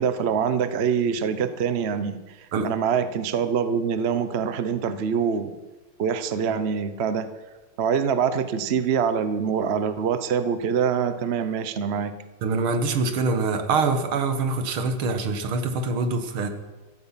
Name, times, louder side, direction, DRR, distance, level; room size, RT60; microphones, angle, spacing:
voice 1, 0.0-2.2 2.6-5.5 6.0-7.3 7.8-12.1, right 7 dB, 50° right, 11 dB, 0.7 m, -24 dB
voice 2, 12.4-16.5, right 4 dB, 80° right, 8 dB, 2.3 m, -24 dB
15.0 x 14.0 x 5.8 m, 1.2 s
omnidirectional pair, 2.3 m